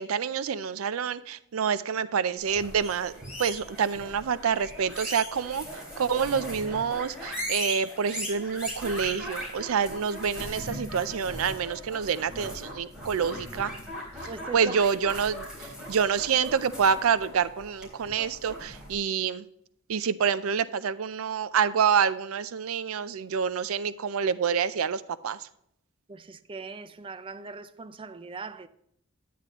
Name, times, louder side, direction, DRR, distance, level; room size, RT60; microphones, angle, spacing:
voice 1, 0.0-3.1 3.4-5.6 6.0-13.7 14.5-19.4 19.9-25.4, right 7 dB, 85° right, 0.5 m, -27 dB
sound 1, 2.4-18.9, equal, 5° right, 4.0 m, -39 dB
voice 2, 14.3-14.8 26.1-28.7, right 4 dB, 25° right, 0.4 m, -40 dB
9.8 x 9.3 x 3.0 m
head